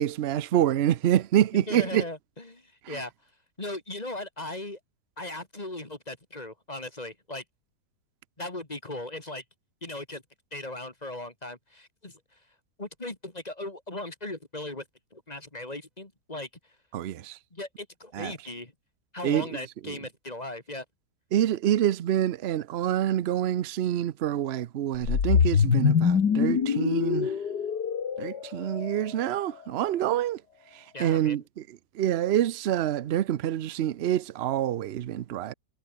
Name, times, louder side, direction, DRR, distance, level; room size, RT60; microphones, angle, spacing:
voice 1, 0.0-2.0 2.8-3.0 16.9-17.4 18.1-18.3 19.2-19.5 19.8-20.0 21.3-27.3 28.2-30.4 30.7-31.6 31.9-35.5, right 11 dB, 60° right, 0.6 m, -26 dB
voice 2, 1.5-3.1 3.6-4.8 5.2-7.4 8.4-9.4 9.8-10.2 10.5-12.4 12.8-14.8 15.1-16.5 17.5-18.7 19.1-20.8 30.9-31.4, left 2 dB, 25° left, 2.5 m, -38 dB
sound 1, 25.0-29.3, left 7 dB, 70° left, 2.3 m, -24 dB
omnidirectional pair, 1.8 m